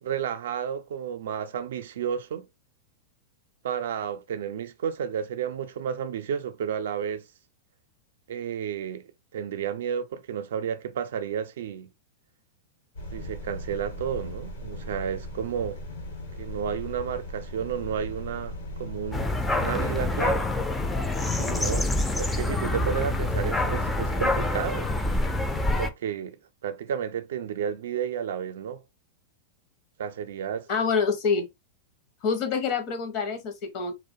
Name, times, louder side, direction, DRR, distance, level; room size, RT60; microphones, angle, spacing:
voice 1, 0.0-2.5 3.6-7.2 8.3-11.9 13.1-15.8 16.4-20.5 21.4-24.9 25.8-28.8 30.0-30.7, right 8 dB, 80° right, 0.4 m, -32 dB
sound 1, 12.9-19.5, left 1 dB, 90° left, 1.0 m, -38 dB
sound 2, 19.1-25.9, left 2 dB, 10° left, 0.3 m, -26 dB
voice 2, 30.7-31.5 32.2-33.9, left 5 dB, 45° left, 0.6 m, -26 dB
2.3 x 2.1 x 2.6 m
hypercardioid pair, 135°, 0 cm